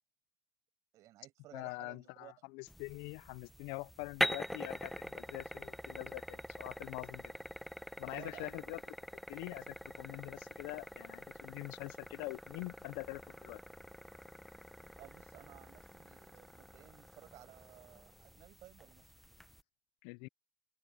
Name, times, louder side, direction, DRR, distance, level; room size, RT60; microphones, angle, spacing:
voice 1, 0.9-2.3 8.1-8.8 15.0-19.1, right 15 dB, 70° right, 6.1 m, -56 dB
voice 2, 1.5-7.3 8.0-8.8 9.3-13.6 20.0-20.3, left 28 dB, 85° left, 0.4 m, -45 dB
sound 1, 2.7-19.6, equal, ahead, 0.7 m, -44 dB
open air
supercardioid pair, 80°, 6 cm